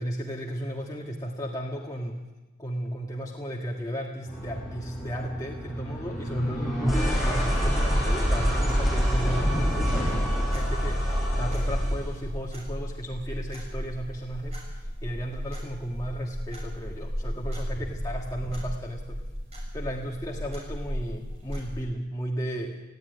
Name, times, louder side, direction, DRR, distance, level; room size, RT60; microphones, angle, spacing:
voice 1, 0.0-2.2 2.6-19.2 19.7-22.7, equal, 20° left, -2 dB, 1.8 m, -34 dB
sound 1, 4.3-12.1, equal, ahead, 5.7 m, -26 dB
sound 2, 10.1-21.8, equal, 35° right, 6.9 m, -35 dB
19.5 x 15.5 x 9.4 m, 1.1 s
head